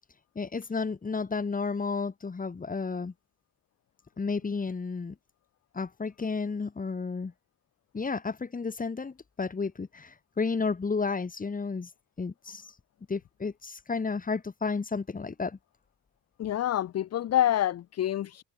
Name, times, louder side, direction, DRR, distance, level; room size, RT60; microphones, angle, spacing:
voice 1, 0.3-3.1 4.2-5.1 5.7-7.3 7.9-11.9 12.2-12.7 13.1-15.6, left 4 dB, 25° left, 2.7 m, -32 dB
voice 2, 16.4-18.4, left 12 dB, 55° left, 0.8 m, -27 dB
cardioid pair, 90°, 30 cm